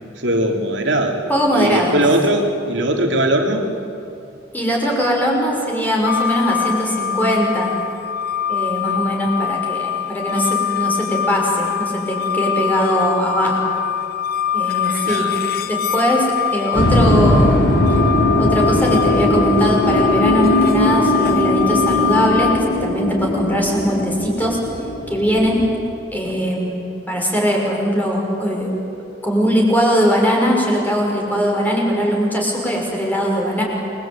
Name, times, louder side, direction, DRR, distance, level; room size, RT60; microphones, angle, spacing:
voice 1, 0.2-1.2 1.5-3.7 8.8-9.1 15.1-15.4, right 1 dB, 70° right, 2 dB, 3.3 m, -20 dB
voice 2, 1.3-1.9 4.5-7.7 8.5-13.6 14.5-15.3 15.7-17.6 17.9-18.0 18.4-24.6 25.1-25.6 26.1-26.8 27.1-28.7 29.2-33.6, equal, 10° left, -1 dB, 6.0 m, -20 dB
sound 1, 6.1-22.6, left 9 dB, 55° left, 1.3 m, -23 dB
sound 2, 16.7-25.7, left 1 dB, 75° left, 6.3 m, -19 dB
28.5 x 22.5 x 9.0 m, 2.8 s
head